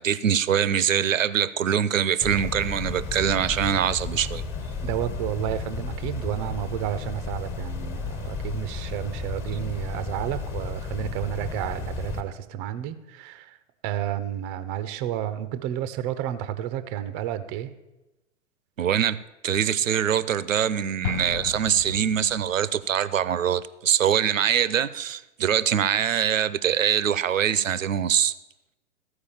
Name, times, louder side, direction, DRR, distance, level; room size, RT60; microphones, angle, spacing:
voice 1, 0.0-4.4 18.8-28.3, right 9 dB, 85° right, 0.5 m, -23 dB
sound 1, 2.2-12.2, left 4 dB, 30° left, 1.3 m, -33 dB
voice 2, 4.8-13.6 13.8-17.7, right 11 dB, 20° right, 0.4 m, -31 dB
Explosion, 21.0-22.8, left 9 dB, 65° left, 0.5 m, -35 dB
14.5 x 4.8 x 7.0 m
figure-of-eight pair, 105°, 38 cm